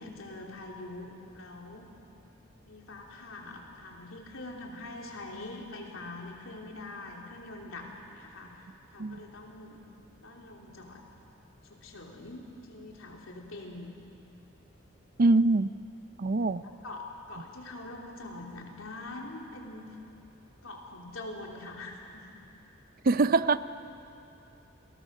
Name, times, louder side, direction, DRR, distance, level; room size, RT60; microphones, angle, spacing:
voice 1, 0.0-1.9 2.7-8.6 8.9-9.8 10.2-11.0 11.7-13.9 16.8-19.9 20.6-22.3, left 2 dB, 90° left, 0 dB, 3.4 m, -44 dB
voice 2, 15.2-15.7 16.2-16.6 23.0-23.6, right 3 dB, 45° right, 14 dB, 0.5 m, -23 dB
28.5 x 20.0 x 6.5 m, 2.8 s
head